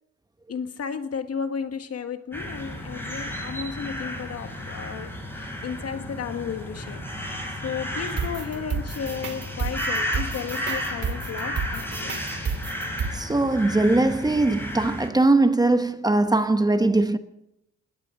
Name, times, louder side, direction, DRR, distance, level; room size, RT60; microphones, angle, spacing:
voice 1, 0.5-7.0 7.6-12.2, left 6 dB, 55° left, 1.5 m, -33 dB
sound 1, 2.3-15.1, equal, 5° left, 6.7 m, -33 dB
sound 2, 8.2-13.1, right 5 dB, 50° right, 2.6 m, -30 dB
voice 2, 13.1-17.2, right 2 dB, 15° right, 0.9 m, -21 dB
20.5 x 17.0 x 3.8 m
cardioid pair, 90°, 30 cm